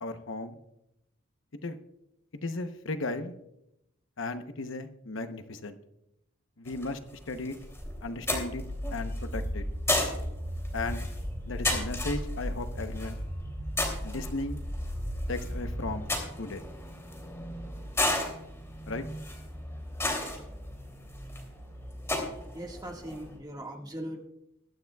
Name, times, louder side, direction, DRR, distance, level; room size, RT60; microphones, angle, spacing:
voice 1, 0.0-0.6 1.6-1.8 2.4-3.3 4.2-5.8 6.6-7.0 7.3-7.6 8.0-8.6 8.9-9.6 10.7-11.1 11.5-13.2 14.0-14.6 15.3-16.1 16.4-16.6 18.9-19.0, left 2 dB, 70° left, 8 dB, 0.9 m, -35 dB
sound 1, 6.7-23.4, left 1 dB, 15° left, 2.9 m, -35 dB
sound 2, 8.5-16.0, equal, 70° right, 4.1 m, -35 dB
voice 2, 22.5-24.2, right 1 dB, 20° right, 1 dB, 1.7 m, -39 dB
21.0 x 12.0 x 2.3 m, 0.82 s
head